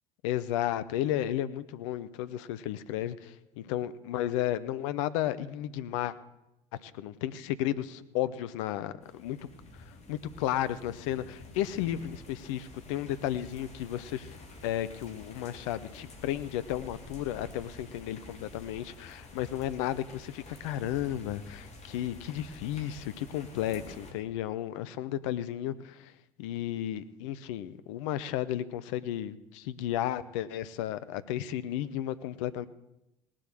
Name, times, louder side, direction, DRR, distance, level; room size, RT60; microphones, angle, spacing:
voice 1, 0.2-6.2 6.8-9.4 10.1-14.3 14.6-26.1 26.4-32.7, left 12 dB, 65° left, 14 dB, 0.7 m, -33 dB
sound 1, 9.0-24.1, left 2 dB, 40° left, 3.1 m, -49 dB
18.5 x 7.6 x 7.6 m, 0.91 s
figure-of-eight pair, 60°, 17 cm